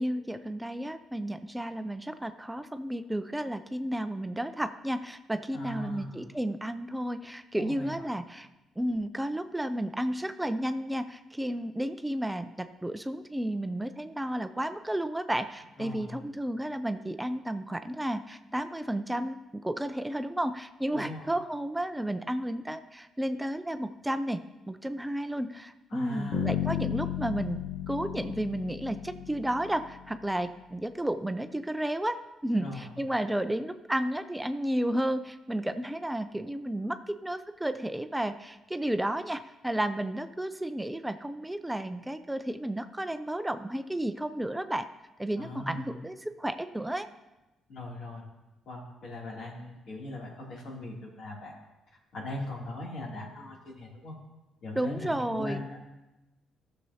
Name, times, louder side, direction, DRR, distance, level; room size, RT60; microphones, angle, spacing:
voice 1, 0.0-8.5 8.8-27.6 27.9-32.2 32.4-44.9 45.2-47.1 54.7-55.6, right 1 dB, 10° right, 9 dB, 0.4 m, -32 dB
voice 2, 5.5-6.2 7.6-8.1 15.8-16.2 20.9-21.3 25.9-26.5 32.6-32.9 45.4-45.9 47.7-48.2 48.6-51.5 52.1-54.1 54.6-55.8, left 1 dB, 65° left, -3 dB, 2.7 m, -39 dB
Bass guitar, 26.3-30.2, left 10 dB, 85° left, 1.1 m, -34 dB
15.0 x 6.8 x 2.8 m, 1.0 s
cardioid pair, 90°, 0 cm